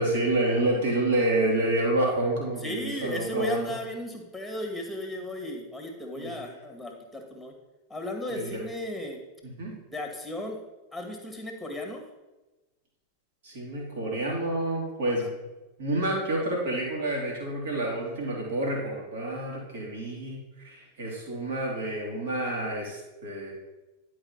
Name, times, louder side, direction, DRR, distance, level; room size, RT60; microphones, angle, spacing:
voice 1, 0.0-3.6 6.1-6.3 8.3-8.6 9.4-9.7 13.4-15.4 15.8-23.5, right 1 dB, 60° right, -2 dB, 2.7 m, -28 dB
voice 2, 2.6-7.5 7.9-9.2 9.9-10.6 10.9-12.0, left 1 dB, ahead, 2 dB, 1.8 m, -35 dB
11.0 x 4.8 x 4.4 m, 1.1 s
figure-of-eight pair, 90°, 0 cm